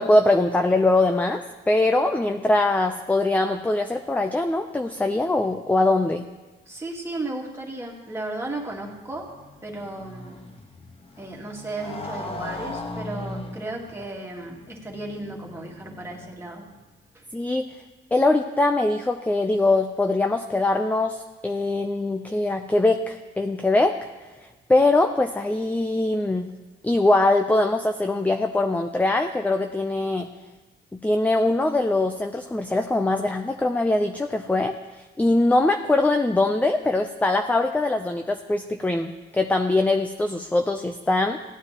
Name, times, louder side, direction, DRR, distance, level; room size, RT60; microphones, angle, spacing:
voice 1, 0.0-6.3 17.3-17.6 18.1-23.9 24.7-26.5 26.8-30.3 30.9-34.7 35.2-41.4, left 2 dB, 10° left, 5 dB, 0.5 m, -22 dB
voice 2, 6.7-9.3 9.6-10.4 11.2-16.7 17.1-17.2, right 2 dB, 15° right, -2 dB, 2.1 m, -34 dB
Motorcycle, 8.6-16.8, left 2 dB, 30° left, 1.2 m, -39 dB
16.0 x 9.3 x 2.9 m, 1.2 s
cardioid pair, 90°, 20 cm